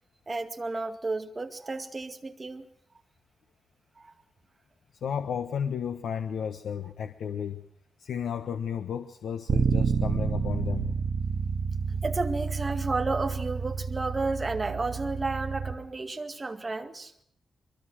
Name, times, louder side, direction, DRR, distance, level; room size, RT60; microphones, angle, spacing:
voice 1, 0.3-2.7 4.0-4.1 12.0-17.1, right 3 dB, 25° right, 6 dB, 2.1 m, -32 dB
voice 2, 5.0-7.6 8.0-10.9, left 7 dB, 90° left, 7 dB, 1.3 m, -33 dB
Bass guitar, 9.5-15.7, right 6 dB, 55° right, 1.9 m, -29 dB
23.5 x 22.5 x 6.3 m, 0.70 s
wide cardioid pair, 145°, 0 cm